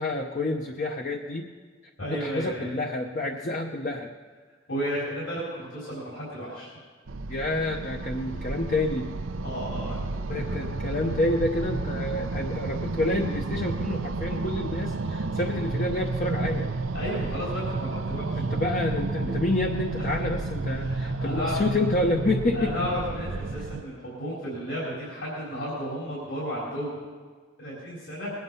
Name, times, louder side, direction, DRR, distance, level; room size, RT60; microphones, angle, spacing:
voice 1, 0.0-1.5 2.1-4.1 7.3-9.1 10.3-16.7 18.4-22.9, left 2 dB, 40° left, 1 dB, 0.7 m, -28 dB
voice 2, 2.0-2.7 4.7-6.7 9.4-10.0 10.3-10.4 16.9-18.4 20.0-20.1 20.7-21.6 22.5-27.0 27.6-28.3, equal, 70° left, -6 dB, 4.2 m, -33 dB
sound 1, 7.1-23.8, right 3 dB, 80° right, 0.5 m, -31 dB
20.5 x 9.3 x 5.5 m, 1.5 s
head